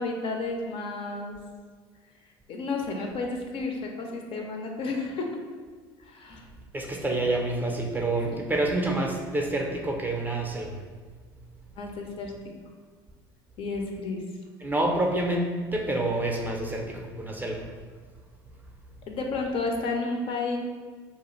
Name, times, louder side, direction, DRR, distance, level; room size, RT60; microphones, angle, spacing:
voice 1, 0.0-1.4 2.5-5.3 6.0-6.4 8.3-8.4 11.8-12.3 13.6-14.2 19.1-20.6, left 3 dB, 50° left, 2 dB, 0.4 m, -31 dB
voice 2, 6.7-10.8 14.6-17.6, right 2 dB, 15° right, 0 dB, 0.4 m, -28 dB
2.4 x 2.2 x 3.0 m, 1.5 s
hypercardioid pair, 75°, 12 cm